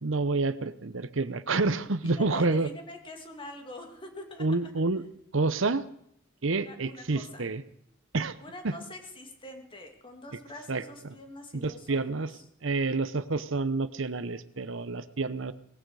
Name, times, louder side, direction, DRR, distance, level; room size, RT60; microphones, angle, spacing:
voice 1, 0.0-2.7 4.4-5.0 5.3-5.9 6.4-7.6 8.1-8.4 8.6-8.8 10.7-11.1 11.5-15.5, right 3 dB, 65° right, 14 dB, 0.9 m, -29 dB
voice 2, 2.0-4.5 6.5-7.5 8.4-12.4, left 1 dB, 25° left, 4 dB, 2.3 m, -45 dB
19.0 x 15.5 x 4.9 m, 0.71 s
head